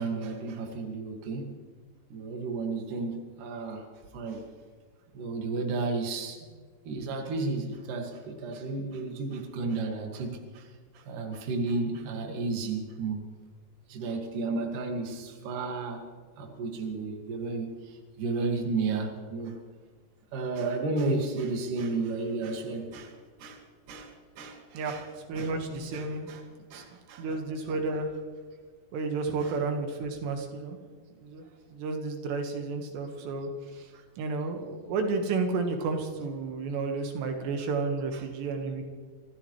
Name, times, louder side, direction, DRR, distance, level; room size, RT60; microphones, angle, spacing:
voice 1, 0.0-1.5 2.1-3.9 4.1-4.4 5.1-6.5 6.8-10.7 10.9-13.2 13.9-16.0 16.4-19.6 20.3-23.1 23.4-23.6 23.9-25.0 25.4-25.5 25.9-26.4 26.7-27.2 29.4-29.5 33.9-34.0, right 3 dB, 55° right, 2 dB, 3.2 m, -33 dB
voice 2, 25.3-26.3 26.7-26.8 27.2-28.1 28.9-30.8 31.2-33.9 34.2-38.8, right 3 dB, 80° right, 4 dB, 3.7 m, -32 dB
26.0 x 15.5 x 3.2 m, 1.5 s
omnidirectional pair, 4.8 m